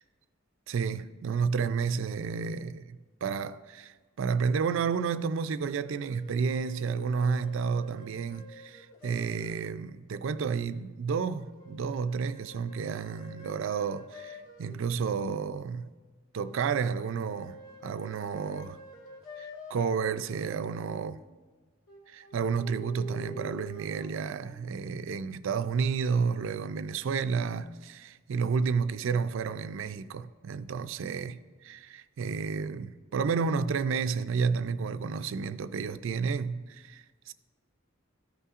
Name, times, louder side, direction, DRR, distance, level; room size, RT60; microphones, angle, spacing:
voice 1, 0.7-15.9 16.3-17.6 17.8-18.8 19.4-21.2 22.1-37.3, right 5 dB, 70° right, 0.4 m, -31 dB
sound 1, 5.7-9.7 11.2-14.8 16.4-19.9 21.9-24.6, equal, 75° left, 2.0 m, -48 dB
14.0 x 5.6 x 2.4 m
head